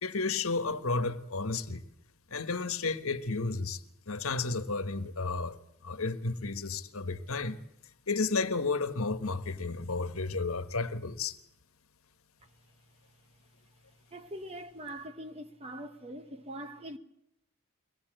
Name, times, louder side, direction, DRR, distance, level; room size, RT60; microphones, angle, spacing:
voice 1, 0.0-1.8 2.3-5.6 5.8-7.6 8.1-11.4, left 3 dB, 75° left, 1.4 m, -32 dB
voice 2, 14.1-17.0, right 1 dB, 30° right, 1.1 m, -42 dB
23.0 x 18.5 x 8.9 m
head